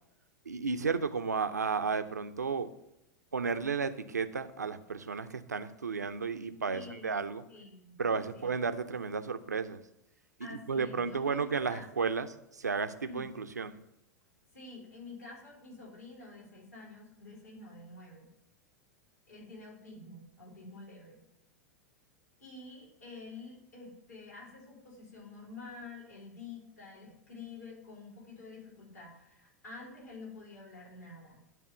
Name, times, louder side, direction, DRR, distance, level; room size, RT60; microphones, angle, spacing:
voice 1, 0.5-2.7 3.3-7.4 8.0-9.8 10.4-13.8, right 5 dB, 75° right, 11 dB, 0.5 m, -33 dB
voice 2, 6.7-7.2 7.5-8.0 8.3-8.6 10.4-11.8 13.1-13.2 14.5-18.3 19.3-21.2 22.4-31.4, left 3 dB, 70° left, -4 dB, 3.8 m, -48 dB
10.0 x 3.6 x 7.1 m, 0.84 s
figure-of-eight pair, 90°, 9 cm